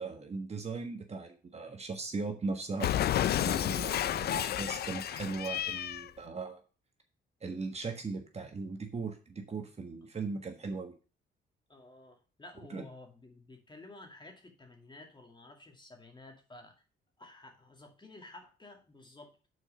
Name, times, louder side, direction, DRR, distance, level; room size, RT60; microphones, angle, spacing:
voice 1, 0.0-6.6 7.4-10.9 12.7-12.8, right 4 dB, 30° right, 4 dB, 1.4 m, -38 dB
Cat, 2.8-6.1, left 11 dB, 55° left, 0.4 m, -31 dB
voice 2, 11.7-16.8 17.2-19.4, left 2 dB, 25° left, 3 dB, 2.2 m, -52 dB
6.4 x 4.5 x 6.5 m, 0.34 s
cardioid pair, 90°, 20 cm